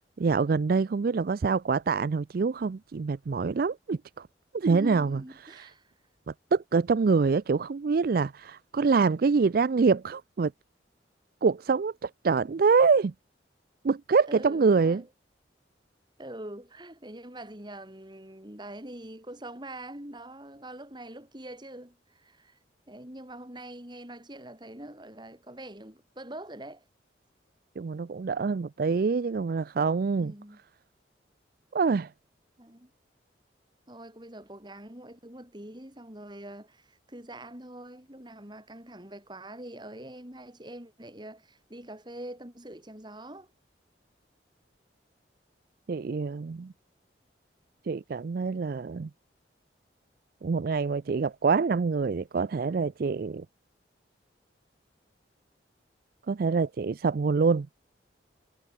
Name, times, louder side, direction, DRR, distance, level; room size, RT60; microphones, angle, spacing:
voice 1, 0.2-4.3 4.5-5.7 6.3-10.5 11.4-13.1 13.8-15.0 27.8-30.3 31.7-32.1 45.9-46.7 47.8-49.1 50.4-53.5 56.3-57.7, right 4 dB, 55° right, 0.4 m, -25 dB
voice 2, 4.7-5.9 14.3-15.1 16.2-22.6 22.9-26.8 30.2-30.6 32.6-32.9 33.9-43.5, right 1 dB, 25° right, 4.0 m, -44 dB
head